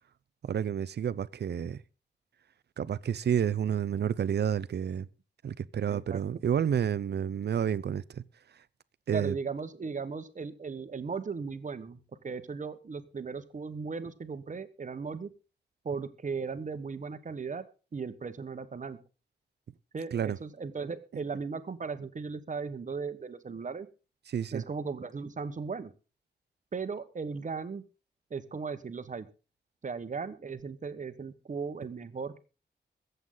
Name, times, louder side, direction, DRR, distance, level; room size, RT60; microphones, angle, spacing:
voice 1, 0.4-1.8 2.8-5.1 5.4-8.2 9.1-9.3 20.1-20.4 24.3-24.6, right 8 dB, 70° right, 0.6 m, -30 dB
voice 2, 5.8-6.2 9.1-12.0 12.2-15.3 15.8-17.6 17.9-19.0 19.9-23.9 24.5-25.9 26.7-27.8 28.3-29.3 29.8-32.4, right 5 dB, 45° right, 1.3 m, -37 dB
22.0 x 8.1 x 3.9 m
wide cardioid pair, 120°, 18 cm